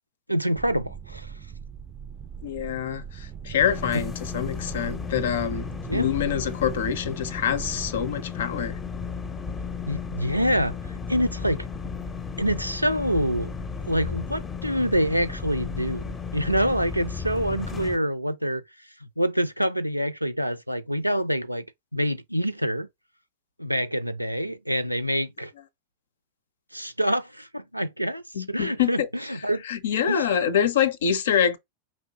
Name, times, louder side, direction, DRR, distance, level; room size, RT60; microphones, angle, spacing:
voice 1, 0.3-1.3 5.9-6.1 9.9-10.8 11.1-11.7 12.4-13.5 13.9-18.6 19.2-21.7 21.9-22.9 23.6-25.5 26.7-28.2 28.5-29.0 29.3-29.6 30.1-30.3, equal, 90° right, 0.4 m, -26 dB
sound 1, 0.5-7.9, right 8 dB, 30° right, 0.4 m, -40 dB
voice 2, 2.4-8.8 28.3-29.1 29.6-31.6, left 8 dB, 60° left, 0.6 m, -26 dB
sound 2, 3.6-18.0, left 5 dB, 20° left, 0.6 m, -34 dB
4.9 x 3.0 x 2.9 m
figure-of-eight pair, 90°, 0 cm